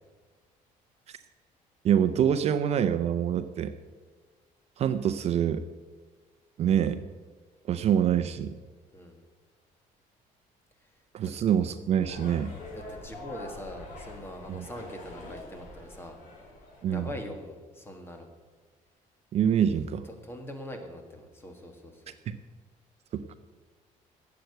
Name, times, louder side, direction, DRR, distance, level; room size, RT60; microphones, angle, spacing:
voice 1, 1.8-3.7 4.8-5.6 6.6-7.0 7.7-8.6 11.1-12.5 14.5-14.7 16.8-17.1 19.3-20.1 22.3-22.4 23.1-23.3, right 9 dB, 45° right, 10 dB, 0.5 m, -26 dB
sound 1, 12.0-17.4, left 2 dB, 65° left, 4.7 m, -45 dB
voice 2, 12.7-16.2 16.9-18.3 20.1-22.1, left 1 dB, 15° left, 4 dB, 1.7 m, -42 dB
11.5 x 7.9 x 8.0 m, 1.4 s
cardioid pair, 160°, 15 cm